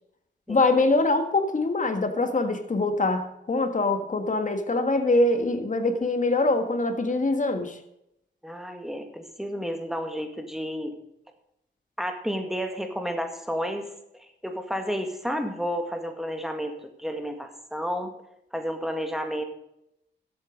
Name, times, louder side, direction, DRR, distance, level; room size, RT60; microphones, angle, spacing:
voice 1, 0.5-7.8, left 2 dB, 40° left, 7 dB, 1.8 m, -24 dB
voice 2, 8.4-11.0 12.0-13.9 14.4-18.1 18.5-19.4, equal, ahead, 5 dB, 2.0 m, -31 dB
13.5 x 8.3 x 5.3 m, 0.82 s
cardioid pair, 85°, 19 cm